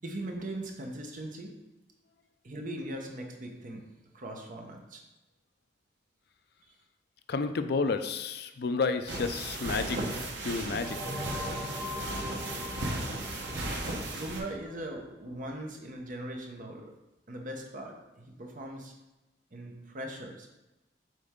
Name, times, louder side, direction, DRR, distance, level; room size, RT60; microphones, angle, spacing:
voice 1, 0.0-1.5 2.4-3.9 4.1-5.0 14.1-16.9 17.3-18.9 19.5-20.5, right 1 dB, 45° right, 2 dB, 1.0 m, -40 dB
voice 2, 7.3-11.3, left 4 dB, 60° left, 9 dB, 0.4 m, -31 dB
sound 1, 9.1-14.4, right 2 dB, 75° right, 1.2 m, -36 dB
sound 2, 10.8-15.2, left 1 dB, ahead, 0.7 m, -40 dB
7.4 x 4.3 x 3.7 m, 1.0 s
head